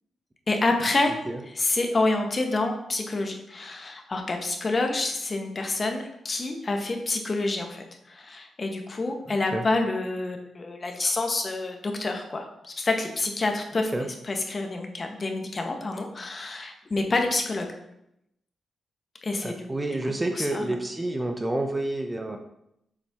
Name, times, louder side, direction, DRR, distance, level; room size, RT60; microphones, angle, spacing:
voice 1, 0.5-1.2 1.5-17.7 19.2-19.7 20.3-20.7, left 2 dB, 35° left, 4 dB, 1.0 m, -28 dB
voice 2, 9.3-9.6 13.9-14.1 19.4-22.4, right 1 dB, 15° right, 4 dB, 0.7 m, -29 dB
7.2 x 4.3 x 3.5 m, 0.79 s
cardioid pair, 90°, 0 cm